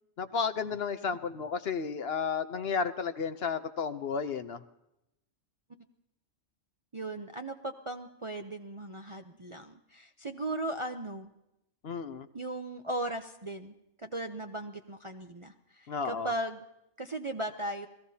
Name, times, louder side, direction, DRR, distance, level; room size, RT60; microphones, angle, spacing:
voice 1, 0.2-4.6 11.8-12.3 15.9-16.3, left 5 dB, 55° left, 10 dB, 0.9 m, -32 dB
voice 2, 6.9-11.3 12.3-16.6 17.0-17.9, right 1 dB, 30° right, 5 dB, 0.6 m, -37 dB
28.5 x 18.0 x 2.8 m, 0.84 s
omnidirectional pair, 1.3 m